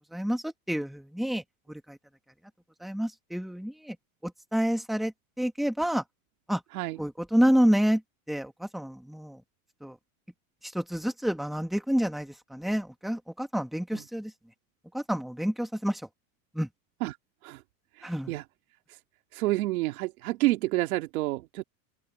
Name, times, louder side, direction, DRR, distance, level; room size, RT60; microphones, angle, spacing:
voice 1, 0.1-1.4 1.7-2.0 2.8-4.0 4.2-5.1 5.4-6.0 6.5-6.6 7.0-8.0 8.3-9.4 9.8-10.0 10.6-14.3 14.9-16.0 16.5-16.7 18.0-18.3, equal, ahead, 1.8 m, -28 dB
voice 2, 18.0-18.4 19.3-21.6, right 18 dB, 90° right, 2.7 m, -29 dB
open air
supercardioid pair, 125°, 42 cm